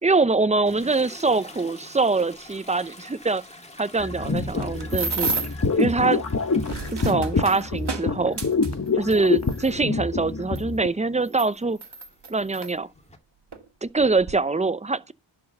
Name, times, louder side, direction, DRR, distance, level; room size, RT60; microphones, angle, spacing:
voice 1, 0.0-3.4 3.8-5.3 5.7-6.2 7.0-8.4 8.9-11.8 12.3-12.9 13.8-15.1, right 3 dB, 15° right, 0.8 m, -23 dB
Toilet flush, 0.7-8.5 8.9-13.2, left 2 dB, 15° left, 2.4 m, -48 dB
sound 1, 4.0-10.9, left 4 dB, 35° left, 1.3 m, -26 dB
sound 2, 4.3-5.7 6.4-9.7 10.6-10.7 11.2-12.7 13.5-13.6 14.0-14.3, right 4 dB, 55° right, 2.2 m, -32 dB
11.0 x 4.8 x 6.6 m
wide cardioid pair, 85°, 48 cm